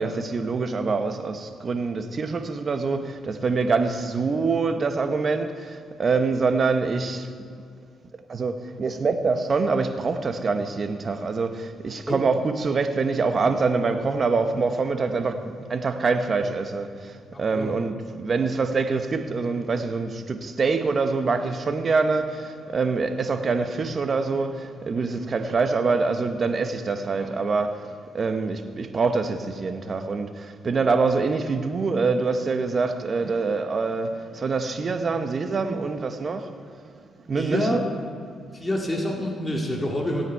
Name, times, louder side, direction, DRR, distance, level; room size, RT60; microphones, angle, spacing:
voice 1, 0.0-7.3 8.3-27.9 28.1-36.5 37.3-37.8, right 4 dB, 40° right, 1.0 m, -25 dB
voice 2, 17.3-17.7 27.2-27.3 37.3-37.8 38.5-40.3, left 1 dB, 15° left, 2.0 m, -27 dB
17.0 x 8.9 x 4.6 m
cardioid pair, 90°, 0 cm